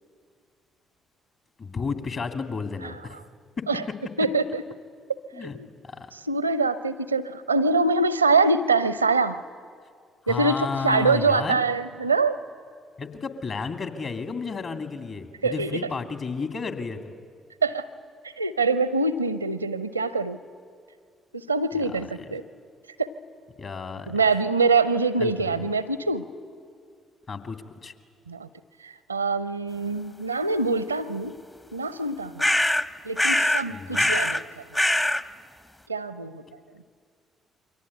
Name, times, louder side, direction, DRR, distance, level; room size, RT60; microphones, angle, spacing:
voice 1, 1.6-3.2 3.6-3.7 5.3-5.6 5.8-6.1 10.2-11.6 13.0-17.1 21.7-22.3 23.6-24.2 25.2-25.7 27.3-27.9 33.7-34.1, left 4 dB, 45° left, 6 dB, 2.7 m, -32 dB
voice 2, 4.2-4.6 5.4-5.7 6.3-9.4 10.3-12.4 15.4-15.8 17.6-17.9 18.4-20.4 21.5-22.4 23.0-23.1 24.1-26.2 28.3-28.5 28.8-31.4 31.7-32.5 33.0-34.4 35.9-36.4, right 3 dB, 85° right, 15 dB, 0.7 m, -24 dB
sound 1, 32.4-32.9 33.2-33.7 33.9-34.4 34.7-35.2, left 1 dB, 15° left, 0.9 m, -22 dB
28.5 x 24.0 x 8.8 m, 2.1 s
figure-of-eight pair, 45°, 0 cm